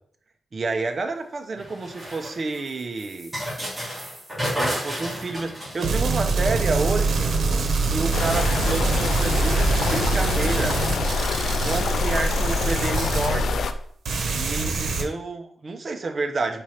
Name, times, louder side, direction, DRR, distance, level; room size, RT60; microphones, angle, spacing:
voice 1, 0.5-3.3 4.6-7.3 7.8-10.8 11.6-13.6 14.3-16.6, right 3 dB, 45° right, 5 dB, 0.8 m, -29 dB
sound 1, 1.6-6.4 7.5-7.6 7.8-11.3, equal, 5° right, 2.5 m, -34 dB
sound 2, 5.8-13.8 14.1-15.0, right 3 dB, 85° right, 1.1 m, -24 dB
sound 3, 8.1-13.7, left 5 dB, 85° left, 0.4 m, -26 dB
4.5 x 4.2 x 5.0 m, 0.63 s
wide cardioid pair, 100°, 0 cm